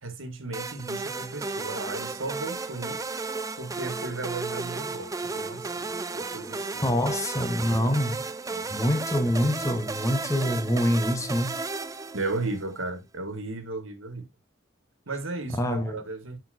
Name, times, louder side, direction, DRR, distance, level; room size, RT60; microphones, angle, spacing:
voice 1, 0.0-3.0 3.6-7.1 8.5-8.7 12.1-14.3 15.0-16.4, right 2 dB, 75° right, 1.7 m, -35 dB
sound 1, 0.5-12.7, right 3 dB, 15° right, 0.5 m, -34 dB
voice 2, 6.8-8.2 8.7-11.6 15.6-16.0, equal, 15° left, 1.0 m, -25 dB
10.5 x 4.5 x 2.6 m
head